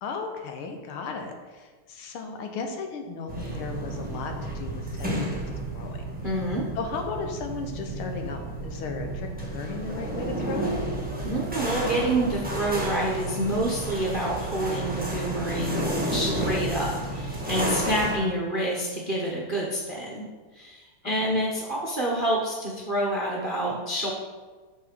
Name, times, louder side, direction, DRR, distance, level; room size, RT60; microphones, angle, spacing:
voice 1, 0.0-5.4 5.7-6.1 6.8-10.7 18.1-18.3 21.0-21.5, left 4 dB, 80° left, 4 dB, 1.8 m, -35 dB
sound 1, 3.3-18.2, right 1 dB, 5° right, 0.7 m, -31 dB
voice 2, 6.2-6.7 11.2-20.2 20.5-24.1, right 1 dB, 45° right, -4 dB, 0.6 m, -28 dB
6.0 x 6.0 x 5.0 m, 1.4 s
omnidirectional pair, 2.4 m